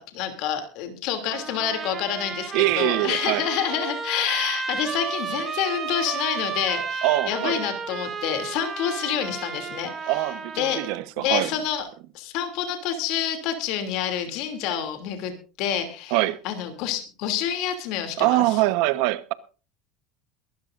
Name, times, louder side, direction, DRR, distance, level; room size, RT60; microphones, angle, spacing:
voice 1, 0.0-10.3 10.6-11.9 12.1-15.3 15.6-16.2 16.4-18.6, left 9 dB, 65° left, 2.9 m, -28 dB
Trumpet, 1.3-11.0, right 5 dB, 20° right, 4.1 m, -33 dB
voice 2, 2.5-3.5 7.0-7.6 10.1-11.5 16.1-16.4 18.2-19.3, right 18 dB, 70° right, 1.1 m, -23 dB
22.5 x 13.5 x 2.6 m
supercardioid pair, 130°, 0 cm